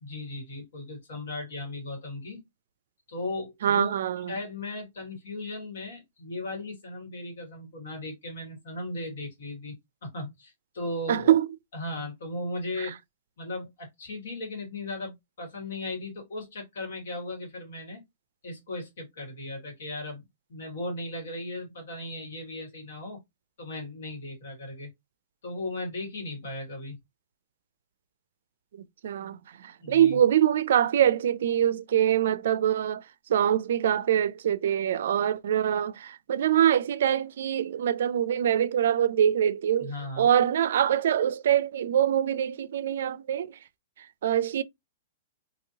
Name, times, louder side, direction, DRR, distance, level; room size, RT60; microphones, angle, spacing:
voice 1, 0.0-2.4 3.1-3.9 4.2-9.7 10.0-11.4 11.7-13.0 13.4-18.0 18.4-20.2 20.5-23.2 23.6-24.9 25.4-27.0 29.8-30.2 39.8-40.3, left 2 dB, 75° left, 2.0 m, -37 dB
voice 2, 3.6-4.3 11.1-11.5 12.8-12.9 28.8-33.0 33.3-39.9 40.2-43.5 44.2-44.6, right 10 dB, 70° right, 0.3 m, -24 dB
3.0 x 2.8 x 2.7 m
hypercardioid pair, 145°, 0 cm